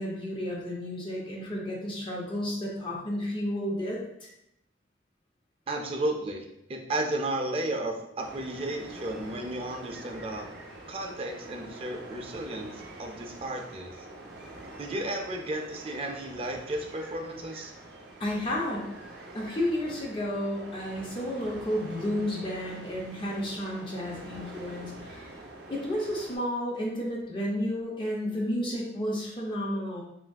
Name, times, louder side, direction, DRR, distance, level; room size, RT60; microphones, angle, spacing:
voice 1, 0.0-4.3 18.2-18.9 19.3-25.3 25.7-30.0, left 1 dB, 30° left, -3 dB, 0.5 m, -32 dB
voice 2, 5.7-6.4 6.7-10.5 10.9-13.9 14.8-17.7, right 1 dB, 30° right, 3 dB, 0.4 m, -33 dB
sound 1, 8.2-26.4, right 2 dB, 85° right, 0.6 m, -46 dB
3.3 x 2.5 x 2.2 m, 0.80 s
head